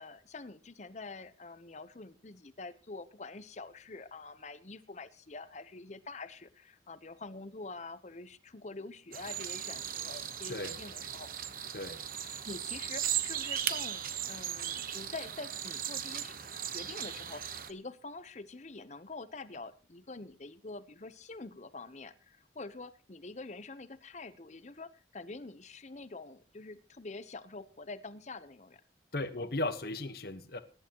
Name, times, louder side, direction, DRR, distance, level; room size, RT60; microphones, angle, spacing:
voice 1, 0.0-11.3 12.2-28.8 29.3-29.4, left 3 dB, 40° left, 14 dB, 0.9 m, -46 dB
sound 1, 9.1-17.7, right 10 dB, 55° right, 1.1 m, -37 dB
voice 2, 29.1-30.6, left 2 dB, 60° left, 11 dB, 1.3 m, -36 dB
21.0 x 11.0 x 3.0 m, 0.34 s
head